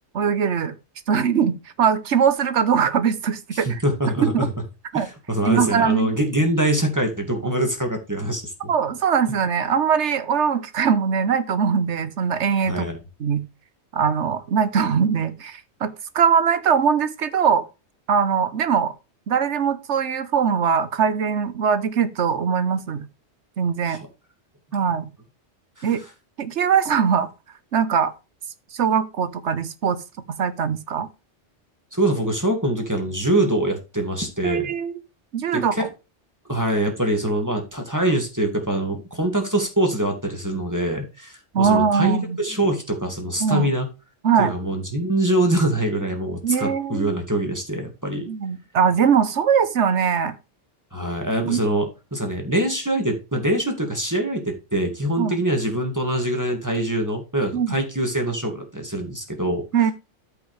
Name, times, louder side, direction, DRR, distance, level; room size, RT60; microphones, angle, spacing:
voice 1, 0.1-0.7 1.1-3.8 4.2-4.3 4.9-5.1 5.4-6.1 8.7-12.8 13.2-13.5 13.9-17.7 18.1-18.9 19.3-23.1 23.6-24.0 24.7-25.1 25.8-26.0 26.4-27.3 27.7-28.1 28.7-30.0 30.4-31.1 34.4-35.0 35.3-35.9 41.5-42.4 43.4-43.7 44.2-44.5 46.4-47.1 48.3-50.3 51.4-51.6 55.2-55.4 57.5-57.8 59.7-59.9, right 7 dB, 75° right, 1.2 m, -21 dB
voice 2, 3.5-4.5 4.9-8.7 12.7-13.0 23.9-24.1 25.8-25.9 31.9-34.7 35.5-35.9 36.5-43.9 44.4-48.3 50.9-59.6, right 1 dB, 15° right, 2.2 m, -24 dB
13.0 x 5.4 x 3.3 m
omnidirectional pair, 1.2 m